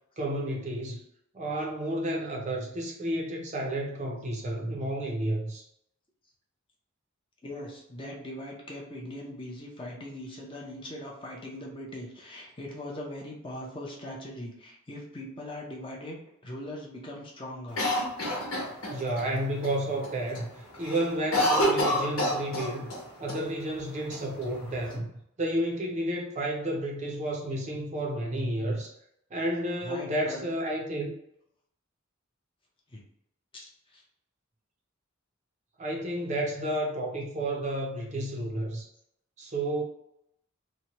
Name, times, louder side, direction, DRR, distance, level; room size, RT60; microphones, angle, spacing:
voice 1, 0.2-1.0 1.3-5.6 18.9-22.9 23.2-25.1 25.4-28.9 29.3-31.1 35.8-38.9 39.4-39.8, right 1 dB, 35° right, -1 dB, 0.5 m, -31 dB
voice 2, 7.4-17.9 18.6-18.7 29.8-30.5 32.9-33.0 33.5-34.0, left 1 dB, 25° left, -2 dB, 0.6 m, -40 dB
Cough, 17.8-19.2 19.6-19.7 20.0-20.4 20.7-23.0 23.3-23.4 24.1-24.9, equal, 80° left, 1.1 m, -27 dB
2.9 x 2.1 x 2.8 m, 0.75 s
head